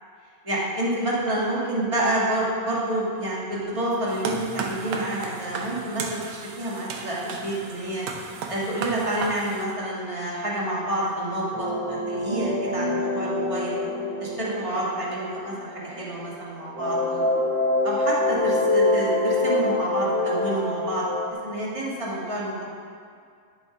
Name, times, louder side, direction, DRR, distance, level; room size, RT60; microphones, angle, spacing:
voice 1, 0.4-8.0 8.5-13.7 14.2-17.3 17.8-21.1 21.4-22.6, right 1 dB, 15° right, -6 dB, 1.3 m, -28 dB
sound 1, 4.1-9.7, right 5 dB, 75° right, 1.6 m, -34 dB
sound 2, 11.5-16.4 16.7-21.3, left 2 dB, 45° right, 1.7 m, -25 dB
11.0 x 8.7 x 4.8 m, 2.2 s
omnidirectional pair, 4.0 m